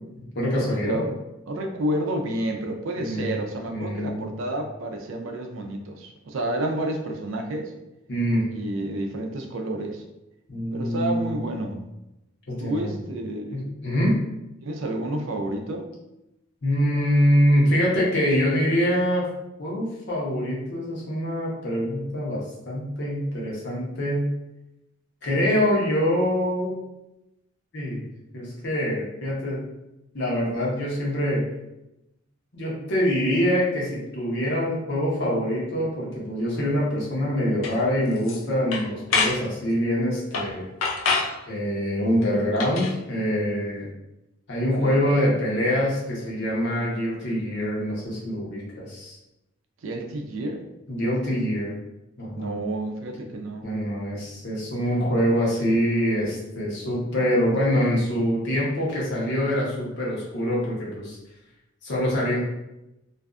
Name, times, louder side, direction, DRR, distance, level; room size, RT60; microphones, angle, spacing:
voice 1, 0.1-1.0 3.0-3.4 3.7-4.4 8.1-8.5 10.5-11.6 12.5-12.9 13.5-14.2 16.6-19.3 19.6-24.3 25.2-26.7 27.7-28.0 28.3-29.6 30.1-31.4 32.5-40.7 41.5-43.9 44.5-49.2 50.9-51.7 52.2-52.6 53.6-61.2 61.8-62.4, equal, 60° left, -5 dB, 0.8 m, -24 dB
voice 2, 1.5-7.7 8.5-10.0 10.7-11.9 12.6-13.7 14.6-15.9 44.8-45.1 49.8-50.6 52.3-53.6, right 1 dB, 70° right, 3 dB, 0.4 m, -30 dB
sound 1, 37.6-37.7 38.2-38.4 38.7-39.4 40.3-40.5 40.8-41.3 42.6-42.9, left 4 dB, 80° left, 0.4 m, -25 dB
2.5 x 2.3 x 2.3 m, 0.92 s
head